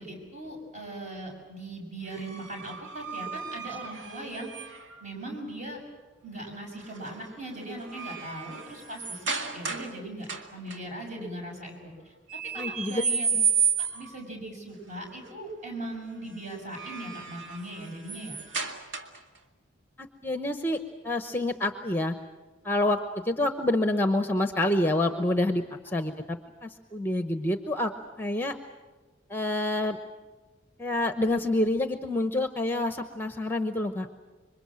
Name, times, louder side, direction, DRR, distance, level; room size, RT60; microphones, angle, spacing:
voice 1, 0.0-4.6 5.0-5.8 6.2-12.1 12.5-13.3 13.9-18.4, right 1 dB, 40° right, 1 dB, 6.9 m, -39 dB
sound 1, 2.1-5.0 6.8-7.1 7.5-10.0 10.2-10.8 12.3-14.2 16.5-19.4, right 6 dB, 75° right, 2.0 m, -32 dB
voice 2, 12.5-13.0 20.0-20.8 21.0-22.1 22.6-23.0 23.2-27.9 28.2-28.6 29.3-30.0 30.8-34.1, left 1 dB, 10° left, 8 dB, 0.8 m, -27 dB
27.0 x 23.5 x 7.5 m, 1.3 s
head